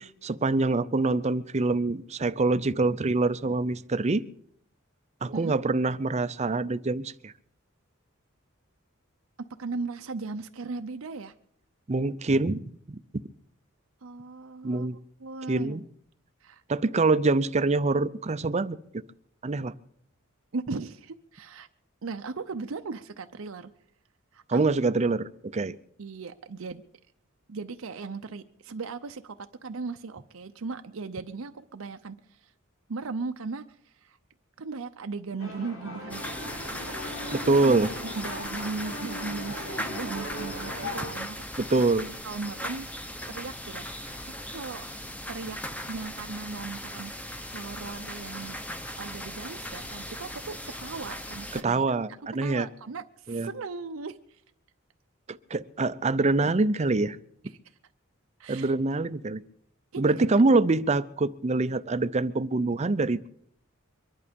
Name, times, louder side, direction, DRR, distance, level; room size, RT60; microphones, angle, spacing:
voice 1, 0.0-4.2 5.2-7.3 11.9-13.0 14.6-15.0 15.5-15.8 16.7-18.8 19.4-19.7 24.5-25.8 37.3-37.9 41.6-42.1 51.5-52.7 53.3-53.5 55.3-57.2 58.5-59.4 60.0-63.3, right 3 dB, 30° right, 13 dB, 0.5 m, -25 dB
voice 2, 9.6-11.3 14.0-14.9 15.2-15.8 16.4-16.6 20.5-21.7 22.0-23.7 24.3-24.6 26.0-26.8 27.5-32.5 32.9-34.2 34.6-36.3 38.0-41.4 41.7-42.9 43.3-44.8 45.3-45.6 45.9-48.6 49.0-51.9 52.3-54.4 58.4-58.7 59.9-60.4, right 4 dB, 80° right, 7 dB, 0.7 m, -37 dB
sound 1, 35.4-41.1, left 1 dB, 75° left, 4.6 m, -38 dB
sound 2, 36.1-51.6, equal, 5° left, 0.9 m, -38 dB
23.5 x 11.0 x 5.2 m, 0.67 s
head